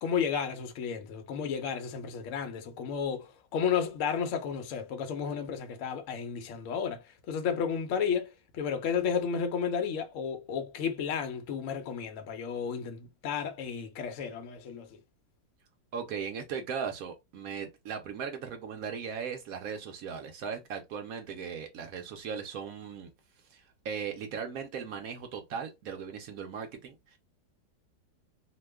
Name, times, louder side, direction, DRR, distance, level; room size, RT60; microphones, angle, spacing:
voice 1, 0.0-15.0, left 7 dB, 65° left, 0.8 m, -32 dB
voice 2, 15.9-23.1 23.5-27.2, right 6 dB, 70° right, 0.8 m, -38 dB
2.9 x 2.2 x 3.3 m
omnidirectional pair, 2.0 m